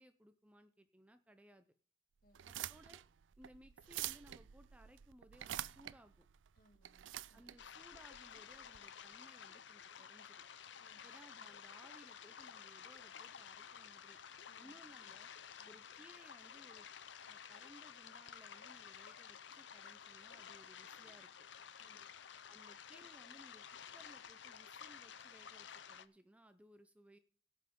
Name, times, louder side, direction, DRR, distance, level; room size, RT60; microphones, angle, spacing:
voice 1, 0.0-1.7 2.5-3.0 3.4-6.3 7.3-10.4 11.0-14.2 14.6-15.3 15.6-16.9 17.3-21.3 22.5-23.6 23.9-27.2, equal, 5° right, 9 dB, 0.6 m, -62 dB
voice 2, 2.2-2.5 6.5-7.5 10.8-11.1 14.5-14.8 15.6-15.8 21.8-22.1, equal, 50° left, 5 dB, 2.3 m, -71 dB
Toaster Start A, 2.3-8.8, right 13 dB, 90° right, 0.4 m, -47 dB
sound 1, 7.6-26.1, left 8 dB, 75° left, 0.7 m, -53 dB
16.5 x 5.8 x 5.3 m, 0.41 s
head